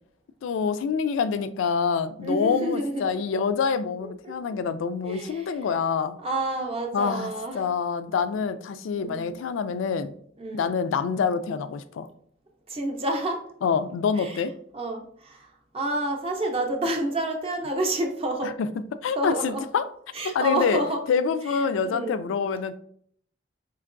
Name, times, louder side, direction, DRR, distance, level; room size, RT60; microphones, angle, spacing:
voice 1, 0.4-6.2 6.9-10.1 10.5-12.1 13.6-14.5 18.4-19.9 20.2-20.8 21.1-22.7, left 6 dB, 80° left, 0.3 m, -26 dB
voice 2, 2.2-3.0 4.0-4.4 5.0-5.6 6.2-7.6 9.0-9.4 10.4-10.7 12.7-13.4 14.2-14.4 14.7-18.5 19.2-19.6 20.1-21.0 21.5-21.6 21.9-22.2, right 1 dB, 30° right, 0.5 m, -29 dB
4.5 x 2.9 x 2.5 m
head